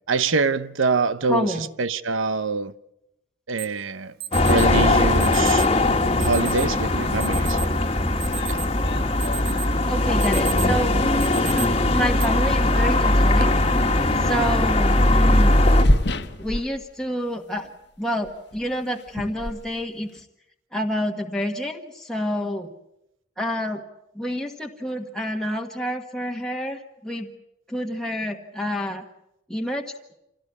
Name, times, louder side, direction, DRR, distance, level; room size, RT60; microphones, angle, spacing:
voice 1, 0.1-2.7 3.5-4.1 4.4-5.6 6.2-7.7 8.5-8.6, right 4 dB, 75° right, 0.9 m, -25 dB
voice 2, 1.3-1.7 9.9-11.0 11.3-15.6 16.4-17.7 18.0-20.2 20.7-22.7 23.4-23.8 24.1-27.3 27.7-29.0 29.5-29.8, equal, 5° left, 1.5 m, -28 dB
Alarm, 3.6-3.7 4.2-4.7 5.2-5.7 6.2-6.7 7.2-7.7 8.1-8.8 9.2-9.7 10.1-10.8 11.2-11.7 12.2-12.3 13.1-13.4, right 13 dB, 50° right, 1.4 m, -33 dB
sound 1, 4.3-15.8, left 1 dB, 30° left, 1.6 m, -20 dB
sound 2, 8.2-10.2 11.3-11.4 13.2-13.5 13.8-13.9 15.5-17.3 17.6-17.9 18.2-20.2, left 1 dB, 55° left, 1.2 m, -29 dB
27.0 x 17.5 x 8.4 m
head